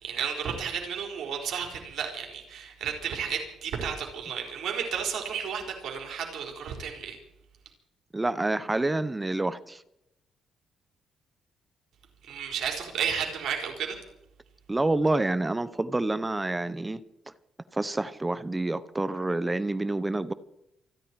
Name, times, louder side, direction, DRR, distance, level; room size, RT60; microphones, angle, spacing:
voice 1, 0.0-7.2 12.3-14.0, right 7 dB, 70° right, 4.8 m, -32 dB
voice 2, 8.1-9.8 14.7-17.0 17.7-20.3, right 2 dB, 15° right, 0.7 m, -28 dB
28.5 x 10.5 x 4.7 m
cardioid pair, 90°, 0 cm